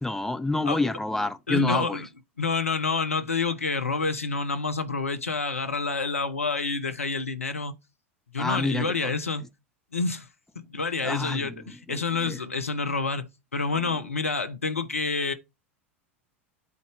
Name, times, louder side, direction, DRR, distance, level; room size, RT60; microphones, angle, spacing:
voice 1, 0.0-2.0 8.4-9.1 11.0-11.5 11.9-12.4 13.9-14.0, left 2 dB, 5° left, 0.8 m, -28 dB
voice 2, 1.5-2.1 2.4-7.7 8.3-9.5 9.9-10.3 10.5-15.3, left 4 dB, 85° left, 1.0 m, -28 dB
8.5 x 4.2 x 6.2 m
figure-of-eight pair, 85°, 7 cm